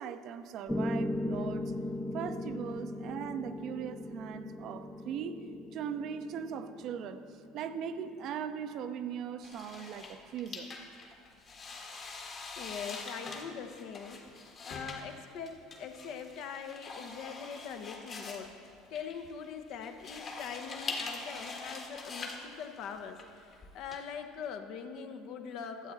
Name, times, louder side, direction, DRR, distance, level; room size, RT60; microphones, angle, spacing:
voice 1, 0.0-1.7 2.1-5.4 5.7-10.7, right 7 dB, 55° right, 10 dB, 0.6 m, -39 dB
Piano, 0.7-8.8, left 1 dB, 10° left, 0.6 m, -38 dB
sound 1, 9.4-24.0, left 3 dB, 40° left, 1.6 m, -44 dB
voice 2, 12.6-14.3 14.6-18.6 18.9-25.9, left 7 dB, 60° left, 7 dB, 0.8 m, -42 dB
13.0 x 8.1 x 4.1 m, 2.4 s
hypercardioid pair, 70°, 0 cm